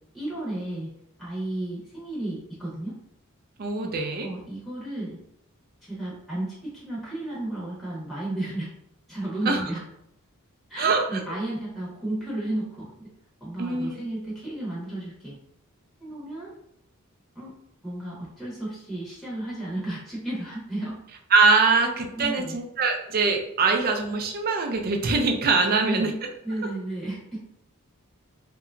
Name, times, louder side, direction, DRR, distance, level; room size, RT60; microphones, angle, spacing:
voice 1, 0.1-0.9 1.2-3.0 3.8-3.9 4.2-5.2 5.8-8.7 9.1-9.8 10.7-13.1 13.4-15.3 16.0-16.5 17.3-17.5 17.8-21.0 22.1-22.6 25.6-26.1 26.4-27.4, right 1 dB, ahead, -7 dB, 0.8 m, -33 dB
voice 2, 3.6-4.3 9.5-9.6 10.8-11.2 13.6-13.9 21.3-26.1, right 4 dB, 45° right, 4 dB, 0.4 m, -23 dB
2.8 x 2.2 x 2.4 m, 0.76 s
head